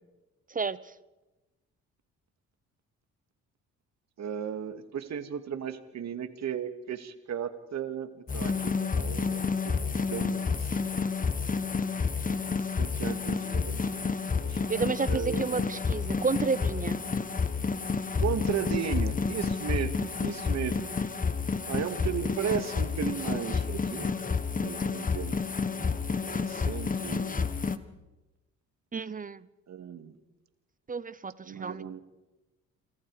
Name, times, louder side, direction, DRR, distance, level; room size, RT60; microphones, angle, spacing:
voice 1, 4.2-10.9 12.8-15.7 18.2-20.9 21.7-25.4 25.7-27.5 29.7-30.1 31.4-32.0, right 8 dB, 60° right, 9 dB, 2.3 m, -36 dB
sound 1, 8.3-27.8, left 5 dB, 25° left, 1.4 m, -30 dB
voice 2, 14.7-17.0 28.9-29.4 30.9-31.8, right 4 dB, 25° right, 18 dB, 0.8 m, -31 dB
28.0 x 25.0 x 4.9 m, 1.1 s
cardioid pair, 90°, 30 cm